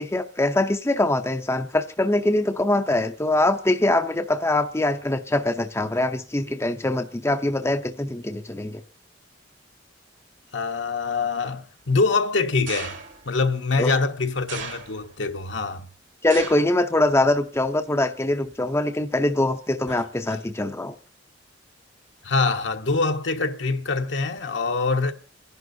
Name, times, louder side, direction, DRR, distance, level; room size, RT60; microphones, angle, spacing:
voice 1, 0.0-8.8 13.8-13.9 16.2-20.9, left 2 dB, 15° left, 0.6 m, -23 dB
voice 2, 10.5-12.9 13.2-15.8 22.2-25.1, left 3 dB, 70° left, 1.1 m, -24 dB
sound 1, 12.7-13.3 14.5-15.3 16.3-16.8 17.2-17.7 18.5-18.6, right 5 dB, 70° right, 2.6 m, -36 dB
29.0 x 11.0 x 2.7 m
head